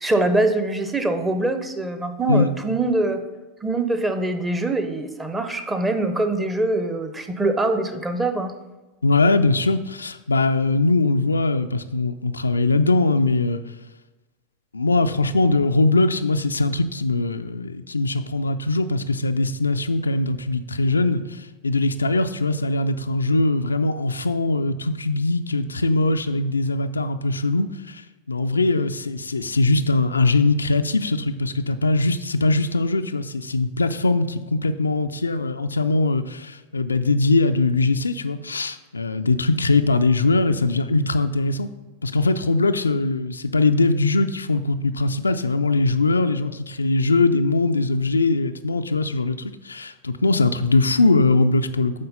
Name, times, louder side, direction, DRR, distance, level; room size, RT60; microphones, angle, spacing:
voice 1, 0.0-3.2 3.6-8.5, right 2 dB, 10° right, 8 dB, 0.7 m, -23 dB
voice 2, 9.0-13.6 14.7-41.7 42.0-51.9, left 3 dB, 75° left, 9 dB, 0.3 m, -21 dB
8.7 x 4.0 x 5.4 m, 1.1 s
figure-of-eight pair, 90°, 0 cm